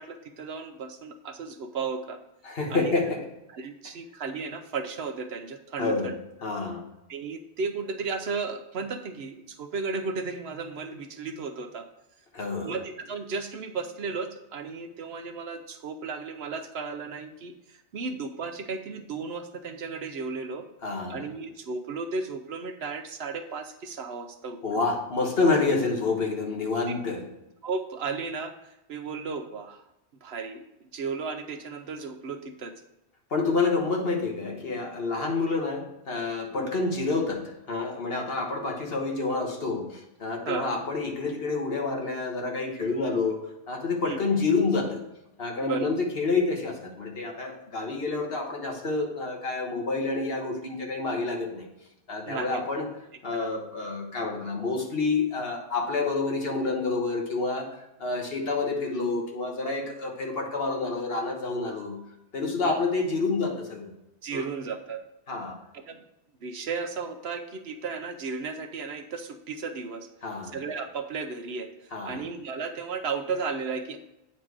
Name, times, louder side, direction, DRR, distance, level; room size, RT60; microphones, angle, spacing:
voice 1, 0.0-2.2 2.7-2.9 3.5-6.1 7.1-11.9 12.6-20.7 21.1-24.8 27.6-29.8 30.2-30.7 30.9-32.8 36.6-36.7 40.4-40.7 44.0-44.2 45.6-45.9 52.3-52.7 53.3-53.5 62.6-62.7 64.2-65.0 65.7-66.0 66.4-70.1 70.5-74.0, right 4 dB, 65° right, 7 dB, 0.9 m, -34 dB
voice 2, 2.4-3.3 5.8-6.8 12.3-12.8 20.8-21.3 24.6-27.3 33.3-45.0 45.4-51.7 52.1-52.9 53.2-57.7 58.0-62.0 62.3-63.9 64.3-64.5 65.3-65.6 70.2-70.6 71.9-72.2, left 3 dB, 55° left, 1 dB, 1.5 m, -28 dB
8.8 x 4.3 x 4.7 m, 0.91 s
omnidirectional pair, 1.2 m